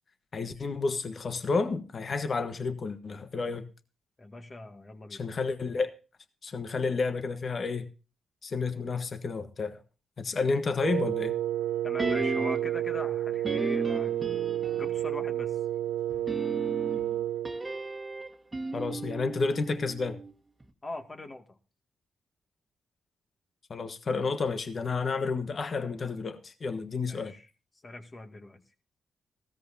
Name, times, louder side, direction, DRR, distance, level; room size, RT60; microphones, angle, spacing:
voice 1, 0.3-3.6 5.1-5.9 6.4-7.9 8.4-9.8 10.2-11.3 18.7-20.2 23.7-27.3, left 4 dB, 50° left, 1.3 m, -31 dB
voice 2, 4.2-5.3 11.8-14.2 14.7-15.6 20.8-21.6 27.0-27.5 27.8-28.6, left 2 dB, 35° left, 2.1 m, -42 dB
Wind instrument woodwind instrument, 10.8-17.5, right 12 dB, 85° right, 0.7 m, -30 dB
sound 1, 12.0-12.8 13.4-15.1 16.1-20.3 20.6-20.7, right 2 dB, 25° right, 1.6 m, -35 dB
16.5 x 13.5 x 2.7 m
supercardioid pair, 55°, 0 cm